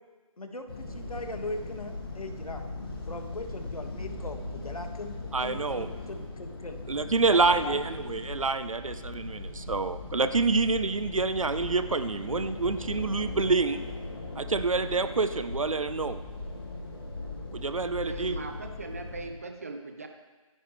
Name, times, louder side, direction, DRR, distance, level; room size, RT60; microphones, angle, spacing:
voice 1, 0.4-2.7 3.1-6.8 7.3-8.0, left 2 dB, 85° left, 5 dB, 2.0 m, -40 dB
sound 1, 0.7-19.3, left 2 dB, 40° left, 2.4 m, -39 dB
voice 2, 5.3-5.9 6.9-13.8 14.3-16.2 17.5-18.4, right 4 dB, 65° right, 11 dB, 1.0 m, -27 dB
voice 3, 18.0-20.1, right 3 dB, 25° right, 5 dB, 0.9 m, -39 dB
25.5 x 10.0 x 3.4 m, 1.4 s
figure-of-eight pair, 170°, 18 cm